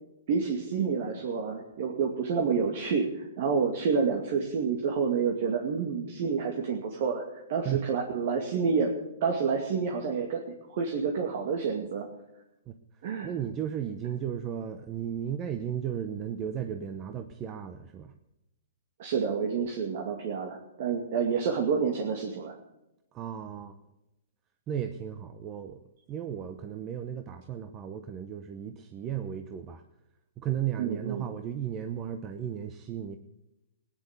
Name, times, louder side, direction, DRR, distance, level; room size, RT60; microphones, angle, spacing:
voice 1, 0.3-7.2 7.5-8.9 9.2-12.1 13.0-13.3 19.0-22.5 30.8-31.2, right 5 dB, 50° right, 2 dB, 2.2 m, -29 dB
voice 2, 13.2-18.1 23.1-23.8 24.7-25.8 26.1-29.8 30.4-33.2, right 9 dB, 20° right, 8 dB, 0.8 m, -35 dB
16.5 x 10.0 x 8.3 m, 0.90 s
hypercardioid pair, 155°, 0 cm